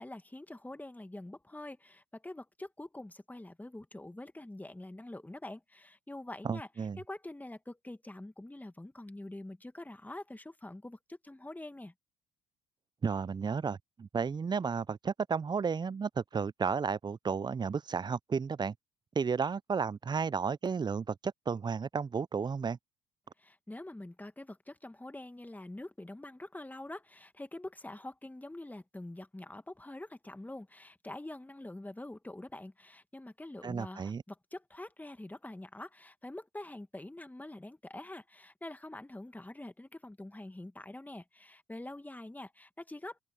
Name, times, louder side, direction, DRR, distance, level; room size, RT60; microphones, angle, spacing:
voice 1, 0.0-11.9 23.4-43.2, left 1 dB, 10° left, 2.3 m, -45 dB
voice 2, 6.4-7.0 13.0-18.7 19.2-22.8 33.6-34.2, right 5 dB, 25° right, 0.6 m, -33 dB
open air
hypercardioid pair, 55°, 17 cm